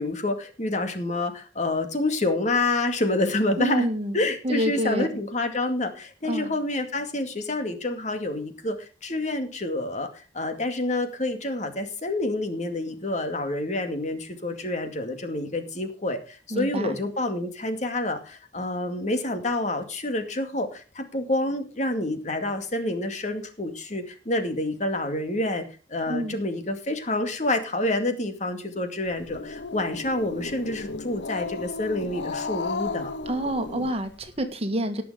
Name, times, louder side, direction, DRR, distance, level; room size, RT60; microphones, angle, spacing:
voice 1, 0.0-3.9 4.1-25.6 25.9-33.1, left 2 dB, 45° left, 6 dB, 2.3 m, -28 dB
voice 2, 3.6-4.2 4.4-5.1 6.2-6.5 16.5-17.0 26.1-26.4 33.2-35.0, equal, 35° right, 8 dB, 1.7 m, -27 dB
Growling, 29.1-34.4, left 3 dB, 85° left, 0.9 m, -34 dB
18.5 x 7.0 x 5.0 m, 0.34 s
head